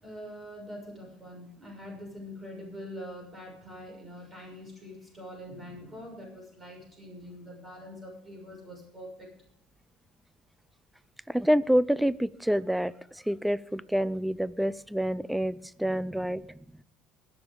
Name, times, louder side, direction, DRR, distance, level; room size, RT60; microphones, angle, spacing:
voice 1, 0.0-9.3, equal, 20° right, 1 dB, 6.4 m, -44 dB
voice 2, 11.3-16.5, equal, 5° right, 20 dB, 0.5 m, -27 dB
21.5 x 7.3 x 5.1 m, 0.70 s
supercardioid pair, 100°, 0 cm